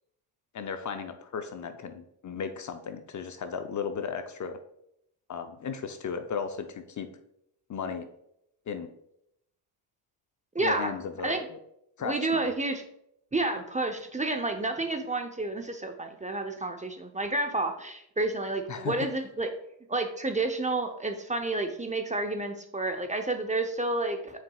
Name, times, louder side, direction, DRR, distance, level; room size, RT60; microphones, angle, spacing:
voice 1, 0.5-4.6 5.3-7.1 7.7-8.1 8.7-8.9 10.6-11.6 12.0-12.5 18.7-19.0, left 6 dB, 40° left, 8 dB, 0.6 m, -35 dB
voice 2, 10.5-10.9 11.2-11.4 12.0-12.8 13.3-19.5 19.9-24.4, right 2 dB, 15° right, 5 dB, 0.7 m, -30 dB
7.1 x 5.9 x 2.3 m, 0.77 s
supercardioid pair, 65°, 48 cm